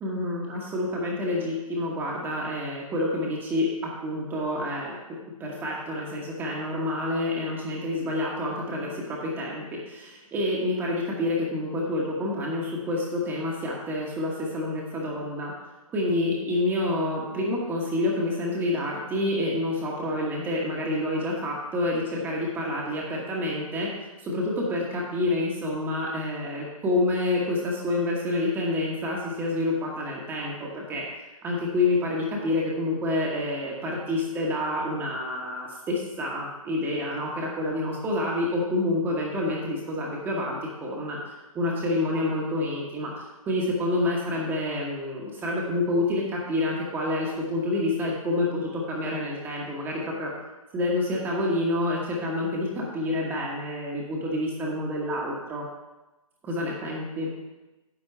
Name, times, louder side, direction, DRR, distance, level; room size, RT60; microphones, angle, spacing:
voice 1, 0.0-3.7 4.0-5.0 5.4-15.5 15.9-23.9 24.2-31.0 31.4-41.2 41.5-50.3 50.7-55.6 56.4-57.3, left 1 dB, 10° right, -3 dB, 1.1 m, -28 dB
9.7 x 4.2 x 6.7 m, 1.1 s
figure-of-eight pair, 140°, 18 cm